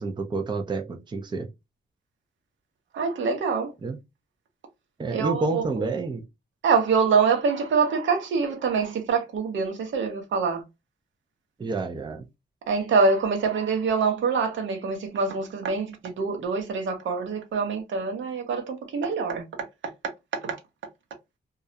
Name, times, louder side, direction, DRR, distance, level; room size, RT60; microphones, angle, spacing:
voice 1, 0.0-1.5 3.8-4.0 5.0-6.2 11.6-12.2, right 3 dB, 25° right, 0.5 m, -29 dB
voice 2, 2.9-3.7 5.1-5.6 6.6-10.6 12.7-19.4 20.4-20.6, right 5 dB, 75° right, 0.8 m, -25 dB
2.3 x 2.0 x 2.7 m
cardioid pair, 80°, 20 cm